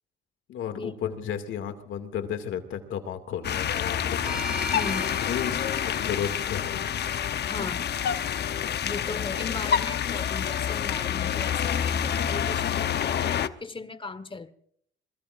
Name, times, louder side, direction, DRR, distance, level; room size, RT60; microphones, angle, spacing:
voice 1, 0.5-4.8 5.2-6.8, left 8 dB, 80° left, 2.3 m, -33 dB
sound 1, 3.4-13.5, left 9 dB, 55° left, 0.9 m, -28 dB
sound 2, 4.2-8.4, equal, 5° right, 4.4 m, -40 dB
voice 2, 4.7-5.2 7.4-7.9 8.8-14.5, left 4 dB, 25° left, 1.3 m, -37 dB
22.5 x 21.0 x 2.5 m
cardioid pair, 90°, 20 cm